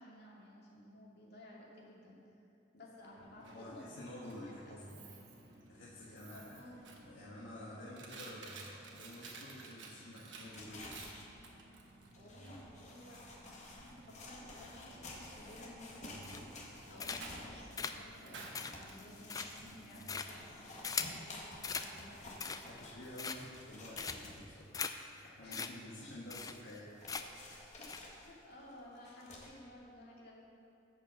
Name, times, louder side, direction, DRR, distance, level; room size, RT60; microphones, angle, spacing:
voice 1, 0.0-2.2 2.7-3.9 4.2-5.2 6.1-6.8 12.2-13.2 13.7-22.4 25.4-25.7 26.0-26.1 27.8-30.3, left 1 dB, 55° left, -5 dB, 2.4 m, -55 dB
Coin (dropping), 3.0-20.8, right 2 dB, 65° right, 1.3 m, -54 dB
voice 2, 3.5-5.0 5.7-6.6 7.0-8.6 8.9-10.9 22.6-24.7 25.2-26.9 27.2-27.3, left 1 dB, 75° left, -7 dB, 1.5 m, -50 dB
sound 1, 10.5-24.6 25.1-25.2 25.4-26.5 27.0-29.6, left 2 dB, 35° left, 1.6 m, -52 dB
sound 2, 16.2-16.6 17.0-17.4 17.8-21.2 21.6-21.9 22.3-22.8 23.2-23.6 24.0-24.4 24.7-24.9 25.2-25.3 25.5-25.7 26.0-26.1 26.3-26.8 27.1-27.4 27.8-28.0, left 5 dB, 20° left, 0.4 m, -40 dB
11.5 x 5.6 x 7.3 m, 2.7 s
head